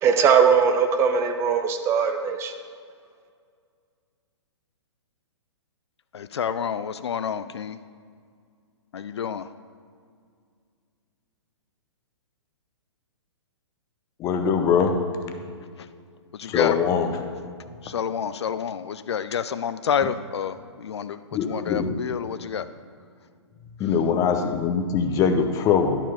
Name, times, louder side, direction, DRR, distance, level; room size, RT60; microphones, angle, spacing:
voice 1, 0.0-2.5, right 6 dB, 15° right, 7 dB, 0.4 m, -20 dB
voice 2, 6.1-7.8 8.9-9.4 16.4-16.8 17.8-22.6, left 7 dB, 65° left, 13 dB, 0.4 m, -28 dB
voice 3, 14.2-15.0 16.5-17.1 21.3-21.9 23.8-26.0, left 6 dB, 20° left, 6 dB, 0.7 m, -22 dB
11.5 x 4.5 x 5.8 m, 2.2 s
figure-of-eight pair, 120°, 15 cm